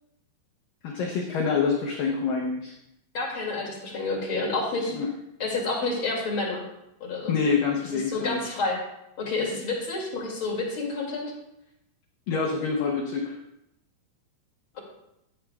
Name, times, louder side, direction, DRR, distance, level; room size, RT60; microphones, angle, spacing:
voice 1, 0.8-2.7 4.9-5.1 7.3-8.4 12.3-13.4, left 5 dB, 85° left, 1 dB, 1.9 m, -26 dB
voice 2, 3.1-4.9 5.4-6.6 7.0-7.3 8.1-8.8 9.2-11.3 14.7-14.8, left 3 dB, 35° left, -3 dB, 2.4 m, -29 dB
14.5 x 9.9 x 2.3 m, 0.83 s
omnidirectional pair, 5.2 m